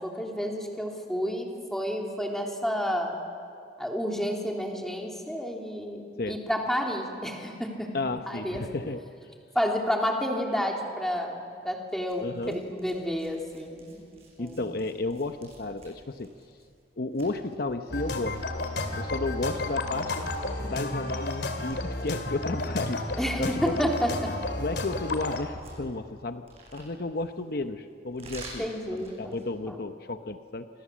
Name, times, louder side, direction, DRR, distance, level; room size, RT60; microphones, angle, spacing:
voice 1, 0.0-3.2 3.8-7.9 8.3-8.6 9.5-14.0 14.4-14.6 23.2-24.3 28.6-29.3 29.7-29.8, equal, ahead, 0 dB, 3.2 m, -30 dB
voice 2, 7.9-9.1 12.2-12.6 14.4-16.3 17.0-18.5 18.9-20.3 20.6-23.1 23.4-23.9 24.6-30.7, left 2 dB, 60° left, 8 dB, 0.8 m, -33 dB
sound 1, 11.9-29.6, right 2 dB, 35° right, 6.8 m, -51 dB
sound 2, 17.9-25.4, left 2 dB, 75° left, 2.7 m, -32 dB
29.0 x 25.5 x 7.4 m, 2.4 s
head